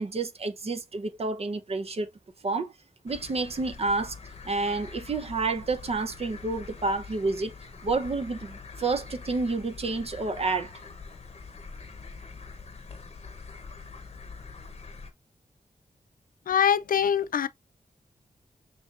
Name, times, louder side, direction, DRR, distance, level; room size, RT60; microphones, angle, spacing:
voice 1, 0.0-2.1 2.4-2.7 3.0-4.2 4.4-7.5 7.8-10.7, right 3 dB, 45° right, 0.8 m, -29 dB
sound 1, 3.1-15.1, left 4 dB, 45° left, 0.9 m, -44 dB
voice 2, 16.5-17.5, left 8 dB, 75° left, 0.4 m, -23 dB
6.1 x 3.4 x 2.4 m
wide cardioid pair, 135°, 14 cm